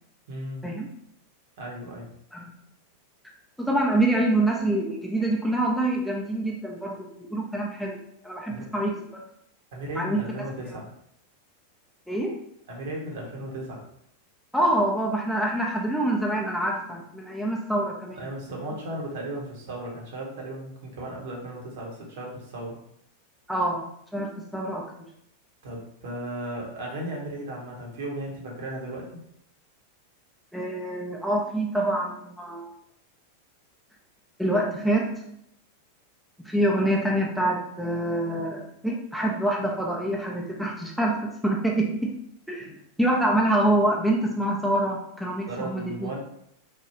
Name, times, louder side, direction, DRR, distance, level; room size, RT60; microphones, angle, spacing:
voice 1, 0.3-0.7 1.6-2.1 8.5-8.7 9.7-10.9 12.7-13.8 18.2-22.8 25.6-29.1 45.5-46.2, right 1 dB, 55° right, -2 dB, 0.9 m, -35 dB
voice 2, 3.6-9.0 10.0-10.4 12.1-12.3 14.5-18.3 23.5-23.8 24.1-24.8 30.5-32.7 34.4-35.4 36.4-42.1 42.5-42.7 43.0-46.1, right 1 dB, ahead, -2 dB, 0.5 m, -26 dB
3.3 x 2.3 x 2.9 m, 0.74 s
figure-of-eight pair, 90°, 0 cm